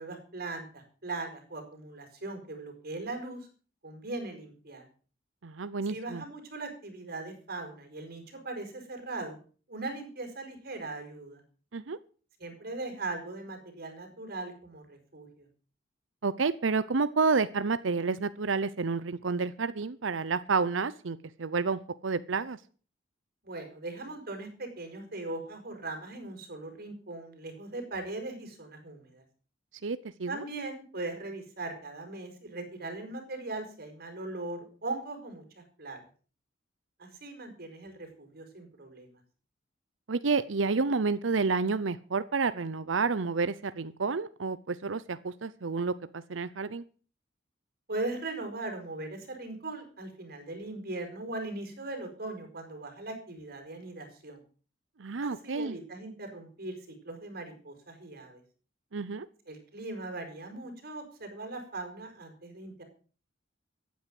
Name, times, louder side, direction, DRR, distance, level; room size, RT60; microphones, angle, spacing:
voice 1, 0.0-3.5 3.8-4.8 5.9-9.4 9.7-11.4 12.4-15.5 23.4-29.2 30.3-36.0 37.0-39.2 47.9-54.4 55.2-58.4 59.5-62.8, right 2 dB, 55° right, 5 dB, 5.3 m, -39 dB
voice 2, 5.4-6.2 11.7-12.0 16.2-22.6 29.8-30.4 40.1-46.8 55.0-55.8 58.9-59.3, right 4 dB, 85° right, 15 dB, 0.7 m, -30 dB
15.0 x 9.5 x 7.7 m, 0.41 s
head